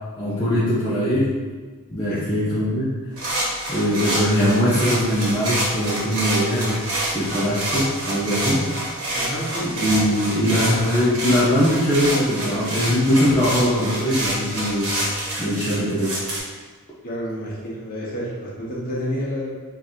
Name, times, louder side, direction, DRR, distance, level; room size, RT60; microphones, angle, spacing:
voice 1, 0.2-1.3 1.9-2.9 3.7-6.8 7.1-8.7 9.6-14.9 15.4-16.2, equal, 20° left, -10 dB, 0.7 m, -21 dB
sound 1, 3.2-16.4, right 1 dB, 90° right, 1.4 m, -27 dB
voice 2, 9.1-9.8 17.0-19.5, equal, 40° left, -6 dB, 1.2 m, -29 dB
3.8 x 2.6 x 4.4 m, 1.4 s
head